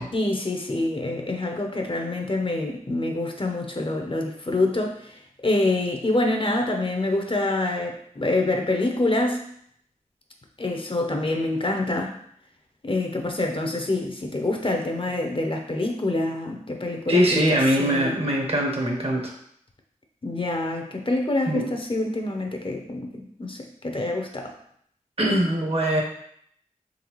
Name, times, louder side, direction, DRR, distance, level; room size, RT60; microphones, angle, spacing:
voice 1, 0.1-9.4 10.6-12.2 12.8-18.2 20.2-24.5, left 2 dB, 40° left, 3 dB, 0.6 m, -26 dB
voice 2, 17.1-19.3 21.5-21.7 25.2-26.0, equal, 45° right, 0 dB, 1.0 m, -22 dB
3.9 x 3.4 x 3.0 m, 0.67 s
wide cardioid pair, 40°, 14 cm